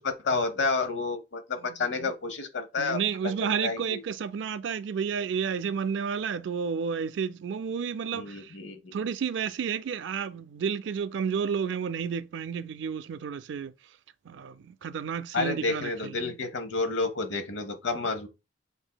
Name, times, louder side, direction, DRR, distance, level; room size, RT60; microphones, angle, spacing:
voice 1, 0.0-3.0 3.2-4.0 8.1-8.9 15.3-18.3, left 3 dB, 75° left, 0.9 m, -30 dB
voice 2, 2.8-8.5 8.9-13.7 14.3-16.3, right 6 dB, 70° right, 0.4 m, -31 dB
7.8 x 2.6 x 2.2 m
head